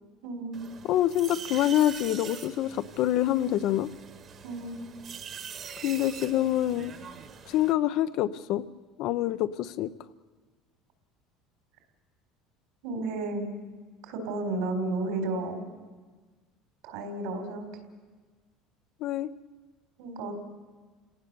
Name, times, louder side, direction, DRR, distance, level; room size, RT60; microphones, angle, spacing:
voice 1, 0.2-0.6 4.4-4.8 12.8-13.4 14.0-15.7 16.8-17.7 20.0-20.3, right 2 dB, 75° right, 6 dB, 4.0 m, -32 dB
sound 1, 0.5-7.7, right 7 dB, 35° right, 1.5 m, -43 dB
voice 2, 0.9-3.9 5.8-6.9 7.5-8.6 9.0-9.9 19.0-19.3, left 13 dB, 55° left, 12 dB, 0.8 m, -26 dB
29.5 x 18.0 x 7.0 m, 1.4 s
cardioid pair, 150°, 0 cm